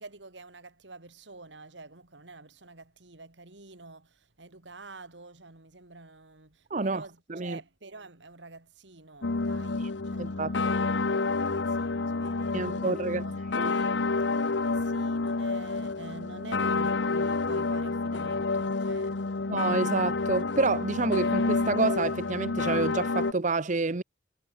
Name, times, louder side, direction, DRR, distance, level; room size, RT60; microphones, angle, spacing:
voice 1, 0.0-14.1 14.3-19.5, right 2 dB, 85° right, 3.1 m, -48 dB
voice 2, 6.7-7.0 7.3-7.6 10.2-10.5 12.5-13.2 13.5-13.7 19.5-24.0, right 3 dB, 45° right, 0.9 m, -28 dB
sound 1, 9.2-23.3, left 3 dB, 90° left, 0.9 m, -29 dB
head